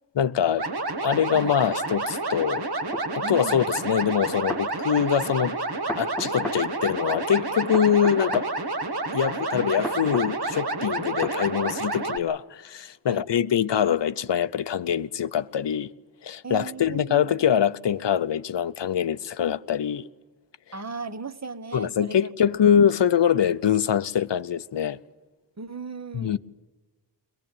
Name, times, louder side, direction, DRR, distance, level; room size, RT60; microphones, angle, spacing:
voice 1, 0.2-0.7 1.0-2.7 3.1-5.6 6.0-8.5 9.1-15.9 16.2-20.1 21.7-25.0 26.1-26.4, left 8 dB, 85° left, 0.7 m, -24 dB
sound 1, 0.6-12.2, right 2 dB, 65° right, 1.5 m, -29 dB
sound 2, 2.9-3.1 4.2-4.7 5.9-6.6 7.7-8.5 9.8-10.3 11.2-11.4, left 1 dB, 5° left, 1.2 m, -33 dB
voice 2, 3.2-3.7 9.5-9.7 13.1-13.2 16.4-17.5 20.7-22.3 25.6-26.4, right 4 dB, 40° right, 1.0 m, -37 dB
22.5 x 19.0 x 8.8 m
wide cardioid pair, 60°, 42 cm